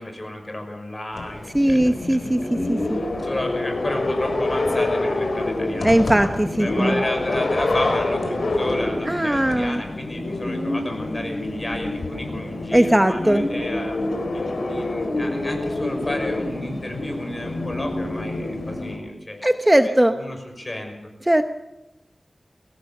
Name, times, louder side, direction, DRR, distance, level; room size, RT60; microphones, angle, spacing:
voice 1, 0.0-2.3 2.7-6.3 6.6-14.0 14.3-20.9, left 1 dB, 35° left, 4 dB, 5.9 m, -32 dB
sound 1, 1.1-19.0, left 2 dB, 80° left, 3.9 m, -27 dB
voice 2, 1.5-3.0 5.8-7.0 9.1-9.8 12.7-13.4 19.4-20.2 21.3-21.4, right 1 dB, 15° right, 7 dB, 1.0 m, -19 dB
24.5 x 17.0 x 6.8 m, 0.96 s
wide cardioid pair, 75°, 0 cm